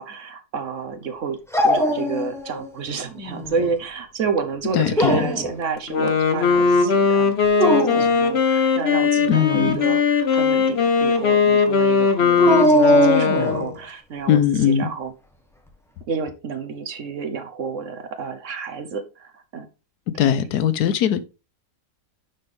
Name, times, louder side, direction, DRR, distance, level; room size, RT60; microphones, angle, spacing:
voice 1, 0.0-1.4 1.6-7.3 7.6-15.1 16.1-19.7, right 5 dB, 55° right, 1.1 m, -30 dB
Dog, 1.5-2.7 3.0-3.7 4.8-5.5 7.4-8.1 12.4-13.7, equal, ahead, 0.9 m, -20 dB
voice 2, 4.7-5.3 9.3-9.8 14.3-14.9 20.2-21.2, left 9 dB, 85° left, 1.3 m, -20 dB
Wind instrument woodwind instrument, 5.8-13.7, left 5 dB, 45° left, 1.2 m, -19 dB
10.0 x 4.2 x 3.4 m
omnidirectional pair, 1.6 m